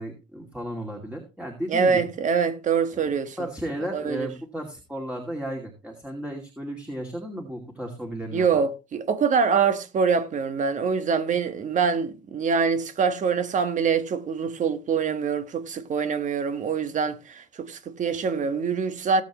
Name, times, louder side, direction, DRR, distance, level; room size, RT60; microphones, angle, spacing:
voice 1, 0.0-2.0 2.9-3.0 3.4-8.6, right 1 dB, 5° right, 2.5 m, -34 dB
voice 2, 1.7-3.4 3.9-4.3 8.3-19.2, right 5 dB, 45° right, 1.5 m, -24 dB
17.5 x 7.7 x 3.1 m
cardioid pair, 110°, 17 cm